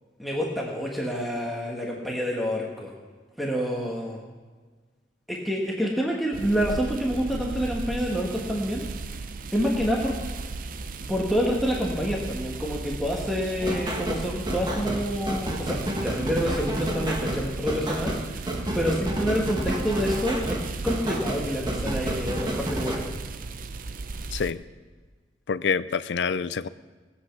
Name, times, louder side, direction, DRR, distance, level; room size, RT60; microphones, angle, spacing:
voice 1, 0.2-2.9 3.4-4.2 5.3-8.8 9.5-10.1 11.1-18.1 18.7-23.1, equal, ahead, -3 dB, 1.5 m, -27 dB
sound 1, 6.3-24.5, right 3 dB, 50° right, 0.6 m, -36 dB
sound 2, 13.6-23.0, right 1 dB, 25° right, 1.5 m, -30 dB
voice 2, 24.3-24.6 25.5-26.7, left 5 dB, 75° left, 15 dB, 0.5 m, -26 dB
18.5 x 8.2 x 5.9 m, 1.4 s
head